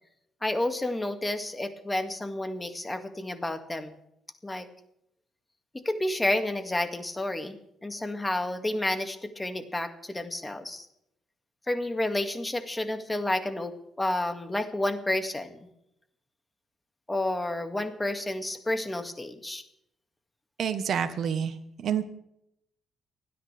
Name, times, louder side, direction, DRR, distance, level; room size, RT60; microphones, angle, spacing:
voice 1, 0.4-4.0 4.4-4.7 5.7-10.9 11.7-15.7 17.1-19.6, left 1 dB, 15° left, 7 dB, 2.1 m, -30 dB
voice 2, 20.6-21.5 21.8-22.0, right 8 dB, 60° right, 8 dB, 1.2 m, -27 dB
30.0 x 10.0 x 3.4 m, 0.76 s
cardioid pair, 90°, 0 cm